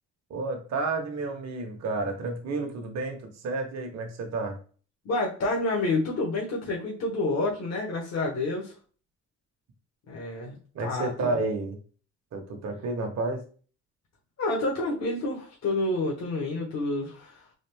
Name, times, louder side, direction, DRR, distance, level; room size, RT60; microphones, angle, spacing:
voice 1, 0.3-4.6 10.7-11.8 12.3-13.5, right 3 dB, 60° right, 3 dB, 1.1 m, -31 dB
voice 2, 5.0-8.7 10.1-11.1 14.4-17.4, left 2 dB, 60° left, -2 dB, 1.4 m, -29 dB
4.0 x 2.5 x 3.4 m, 0.40 s
cardioid pair, 90°, 30 cm